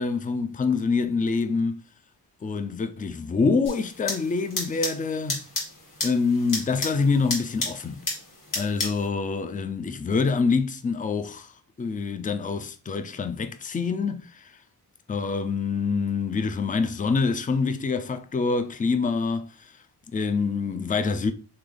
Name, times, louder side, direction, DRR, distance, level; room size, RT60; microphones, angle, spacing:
voice 1, 0.0-1.8 2.4-5.5 6.0-8.0 8.5-11.5 11.8-14.6 15.1-19.8 20.1-21.3, left 4 dB, 20° left, 0.4 m, -26 dB
sound 1, 3.6-9.1, left 2 dB, 55° left, 1.7 m, -33 dB
3.2 x 2.8 x 3.8 m
cardioid pair, 65°, 39 cm